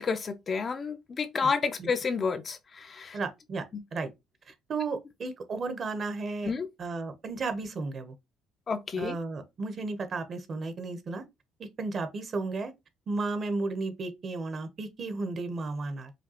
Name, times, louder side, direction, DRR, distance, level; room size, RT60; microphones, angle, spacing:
voice 1, 0.0-3.2 3.7-3.8 6.4-6.7 8.7-9.2, left 5 dB, 35° left, 0.5 m, -30 dB
voice 2, 3.1-3.6 3.9-4.1 4.5-6.5 6.8-8.1 9.0-11.2 11.6-12.7 13.1-16.1, right 3 dB, 40° right, 0.8 m, -34 dB
5.0 x 2.3 x 2.8 m
cardioid pair, 120°, 0 cm